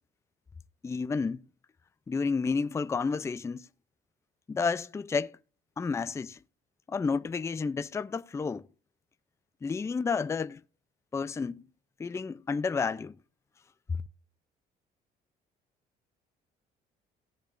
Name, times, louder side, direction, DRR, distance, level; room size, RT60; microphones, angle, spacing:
voice 1, 0.8-1.4 2.1-3.7 4.5-5.3 5.8-6.4 6.9-8.6 9.6-10.6 11.1-11.6 12.0-13.2 13.9-14.0, left 5 dB, 15° left, 0.4 m, -30 dB
18.0 x 7.1 x 2.5 m
cardioid pair, 110°, 17 cm